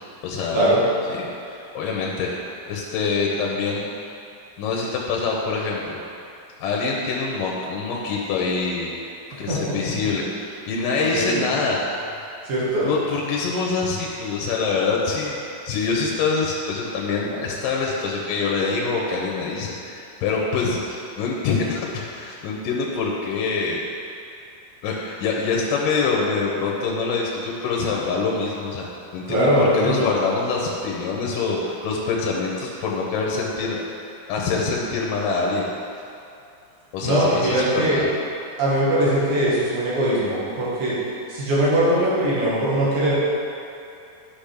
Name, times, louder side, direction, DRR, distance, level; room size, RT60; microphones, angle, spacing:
voice 1, 0.2-0.6 1.1-2.3 2.7-3.9 4.6-6.0 6.6-9.0 9.4-11.8 12.8-23.9 24.8-28.9 29.1-33.8 34.1-35.7 36.9-38.1, left 4 dB, 80° left, -3 dB, 2.4 m, -25 dB
voice 2, 11.0-11.6 12.5-12.9 29.3-30.1 37.0-38.0 38.6-41.0 41.3-43.1, right 1 dB, 80° right, -8 dB, 3.6 m, -21 dB
10.0 x 6.0 x 3.5 m, 2.7 s
omnidirectional pair, 4.1 m